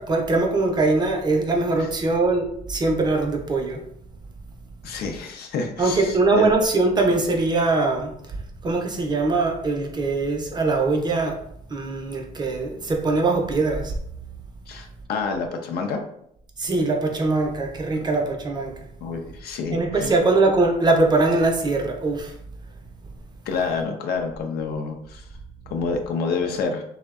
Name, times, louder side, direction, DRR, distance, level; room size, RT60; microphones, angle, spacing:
voice 1, 0.0-3.8 5.8-11.4 11.7-13.9 16.6-18.7 19.7-22.3, right 3 dB, 25° right, 2 dB, 0.4 m, -22 dB
voice 2, 4.8-6.5 14.7-16.0 19.0-20.1 23.5-25.2 25.7-26.8, left 4 dB, 70° left, 4 dB, 0.5 m, -28 dB
2.6 x 2.1 x 2.3 m, 0.70 s
cardioid pair, 110°, 17 cm